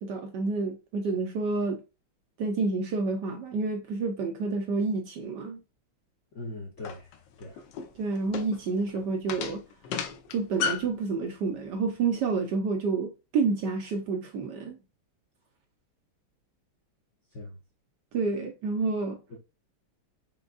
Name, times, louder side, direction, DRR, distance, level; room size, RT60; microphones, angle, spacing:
voice 1, 0.0-1.8 2.4-5.6 8.0-9.6 10.3-14.8 18.1-19.2, right 4 dB, 70° right, 1.1 m, -29 dB
voice 2, 6.3-7.1 7.4-7.6 17.3-17.6 19.3-19.4, left 2 dB, 55° left, 0.8 m, -40 dB
sound 1, 6.8-11.0, left 7 dB, 75° left, 1.2 m, -34 dB
5.2 x 3.5 x 2.3 m
omnidirectional pair, 2.3 m